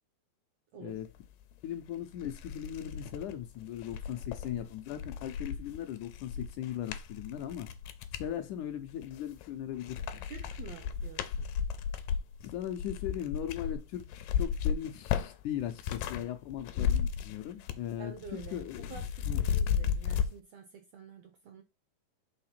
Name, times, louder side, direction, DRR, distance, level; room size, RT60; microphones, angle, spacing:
sound 1, 1.6-1.7 2.2-8.3 8.9-9.5 9.8-16.2 16.5-17.9 18.2-20.3, left 8 dB, 90° left, 2.4 m, -34 dB
voice 1, 1.6-7.7 8.1-10.3 12.4-19.4, left 11 dB, 75° left, 2.0 m, -39 dB
voice 2, 10.2-11.5 18.0-21.6, right 7 dB, 80° right, 1.5 m, -49 dB
5.8 x 3.6 x 5.8 m
omnidirectional pair, 3.9 m